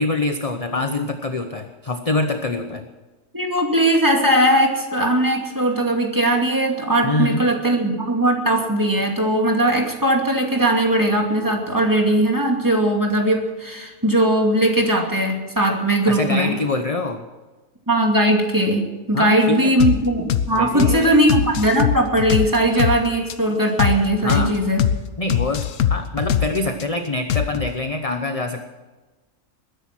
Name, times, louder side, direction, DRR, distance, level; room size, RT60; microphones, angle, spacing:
voice 1, 0.0-2.9 7.0-7.5 16.1-17.2 19.1-19.7 20.5-21.2 24.2-24.6 25.2-28.7, left 2 dB, 30° left, 6 dB, 0.9 m, -25 dB
voice 2, 3.3-16.6 17.9-24.9, right 1 dB, 15° right, 1 dB, 2.5 m, -19 dB
sound 1, 19.8-20.0 20.3-20.5 20.8-21.0 21.3-23.0 23.3-23.4 23.8-24.0 24.3-24.5 24.8-25.0 25.3-26.8 27.3-27.7, left 9 dB, 70° left, 1.2 m, -21 dB
21.0 x 10.5 x 6.1 m, 1.2 s
omnidirectional pair, 1.4 m